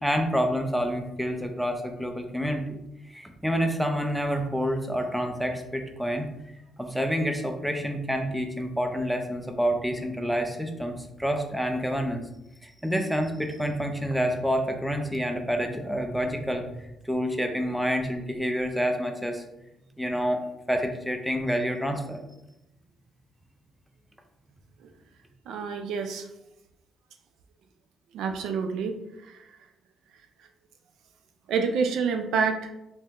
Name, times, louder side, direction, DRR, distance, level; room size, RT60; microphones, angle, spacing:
voice 1, 0.0-2.8 3.1-6.3 6.8-12.2 12.6-19.4 20.0-20.4 20.7-22.2, equal, ahead, 4 dB, 0.5 m, -28 dB
voice 2, 25.5-26.3 28.1-28.9 29.3-29.4 31.5-32.7, right 5 dB, 80° right, 5 dB, 0.4 m, -27 dB
3.5 x 3.2 x 2.9 m, 0.89 s
cardioid pair, 90°, 0 cm